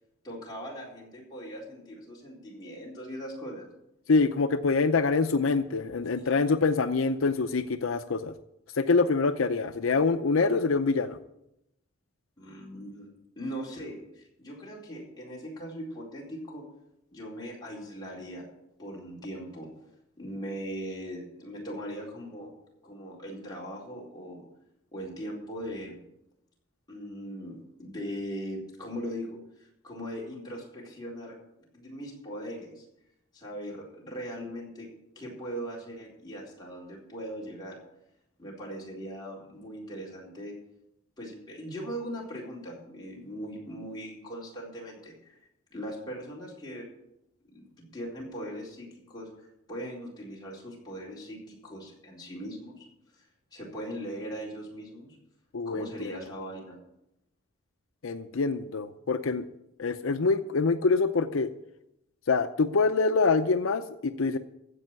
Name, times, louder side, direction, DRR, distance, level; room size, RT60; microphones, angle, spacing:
voice 1, 0.2-3.7 12.4-13.1 13.4-16.6 17.1-18.4 18.8-19.7 20.2-22.5 22.8-24.4 24.9-26.0 26.9-31.3 31.7-32.8 33.3-34.9 35.2-37.8 38.4-40.5 41.2-45.4 45.7-46.9 47.5-52.9 53.2-53.3 53.5-55.2 55.6-56.8, equal, 20° left, -4 dB, 4.2 m, -40 dB
voice 2, 4.1-8.3 8.8-11.2 55.5-56.1 58.0-59.4 59.8-61.5 62.3-64.4, left 4 dB, 80° left, 10 dB, 0.6 m, -25 dB
15.5 x 5.5 x 9.5 m, 0.82 s
head